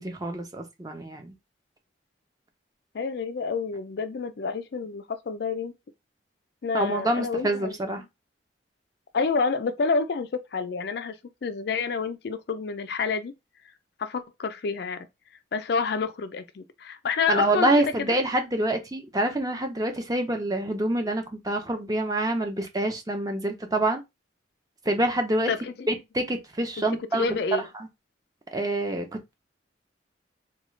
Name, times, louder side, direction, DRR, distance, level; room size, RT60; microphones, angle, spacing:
voice 1, 0.0-1.3 6.7-8.0 17.3-24.0 24.9-25.5 25.9-27.2 28.5-29.1, right 1 dB, 20° right, 0.6 m, -26 dB
voice 2, 2.9-5.7 6.6-7.8 9.1-11.1 11.4-13.3 14.0-15.1 15.5-18.1 25.5-25.9 27.1-27.7, left 5 dB, 55° left, 0.4 m, -28 dB
3.7 x 2.3 x 3.1 m
head